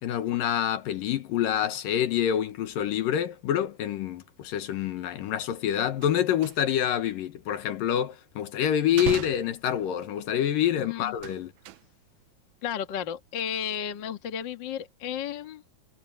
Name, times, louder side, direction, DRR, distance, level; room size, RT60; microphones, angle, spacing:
voice 1, 0.0-11.5, left 10 dB, 70° left, 2.7 m, -27 dB
sound 1, 5.2-5.3 5.6-7.0 7.2-8.4 8.8-10.2 11.0-12.2 12.5-12.9 13.2-13.4, right 15 dB, 90° right, 1.7 m, -39 dB
voice 2, 10.7-11.1 12.6-15.6, left 9 dB, 50° left, 1.4 m, -33 dB
omnidirectional pair, 4.4 m